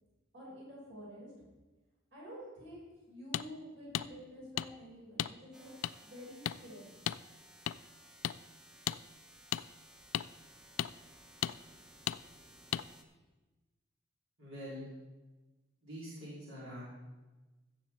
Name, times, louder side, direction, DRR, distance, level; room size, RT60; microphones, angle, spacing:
voice 1, 0.3-1.3 2.1-5.7 6.0-7.0, equal, 65° right, -4 dB, 4.1 m, -49 dB
sound 1, 3.3-3.5 3.9-4.1 4.6-4.7 5.2-5.3 5.8-5.9 6.4-6.6 7.1-7.2 7.7-7.8 8.2-8.4 8.9-9.0 9.5-9.6 10.1-10.3 10.8-10.9 11.4-11.5 12.1-12.2 12.7-12.8, left 11 dB, 80° left, 0.3 m, -34 dB
sound 2, 5.5-13.0, right 1 dB, 5° right, 0.7 m, -58 dB
voice 2, 14.4-14.9 15.8-16.9, equal, 80° right, -8 dB, 3.7 m, -45 dB
15.5 x 7.0 x 4.4 m, 1.2 s
head